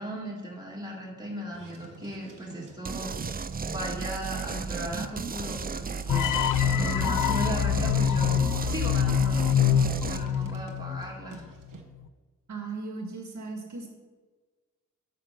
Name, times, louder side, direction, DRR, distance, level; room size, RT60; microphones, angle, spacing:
voice 1, 0.0-3.1 3.7-11.5, equal, 15° right, -2 dB, 2.2 m, -37 dB
sound 1, 1.5-11.8, right 4 dB, 90° right, 1.3 m, -48 dB
sound 2, 2.9-10.2, right 5 dB, 30° right, 0.4 m, -34 dB
sound 3, 6.1-11.2, left 9 dB, 80° left, 0.5 m, -25 dB
voice 2, 12.5-13.9, right 3 dB, 65° right, 1 dB, 1.7 m, -37 dB
8.8 x 7.0 x 5.9 m, 1.4 s
wide cardioid pair, 85°, 31 cm